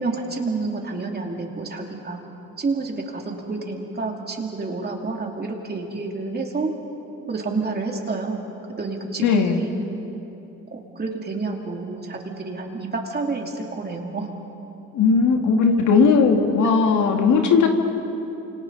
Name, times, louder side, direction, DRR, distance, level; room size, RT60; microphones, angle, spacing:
voice 1, 0.0-2.2 2.6-6.7 7.3-8.4 8.8-9.7 10.7-14.3, right 3 dB, 30° right, 1 dB, 2.9 m, -29 dB
voice 2, 9.2-9.6 14.9-17.7, left 5 dB, 75° left, 3 dB, 2.2 m, -17 dB
28.0 x 26.5 x 4.1 m, 3.0 s
cardioid pair, 90°, 30 cm